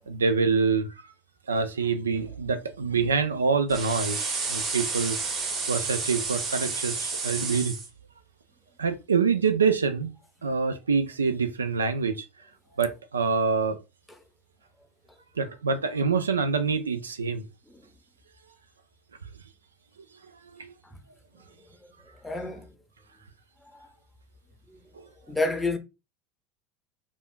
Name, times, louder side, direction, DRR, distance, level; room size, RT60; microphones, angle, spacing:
voice 1, 0.1-1.1 1.5-5.2 5.7-7.8 8.8-10.1 10.4-12.3 12.8-13.8 15.4-17.5 20.4-20.7 24.9-25.0, right 5 dB, 85° right, 0.3 m, -26 dB
sound 1, 3.7-7.9, right 4 dB, 35° right, 1.4 m, -31 dB
voice 2, 22.2-22.7 23.7-23.9 24.7-24.8 25.3-25.8, left 2 dB, 10° left, 0.6 m, -30 dB
3.4 x 2.2 x 2.4 m
hypercardioid pair, 80°, 0 cm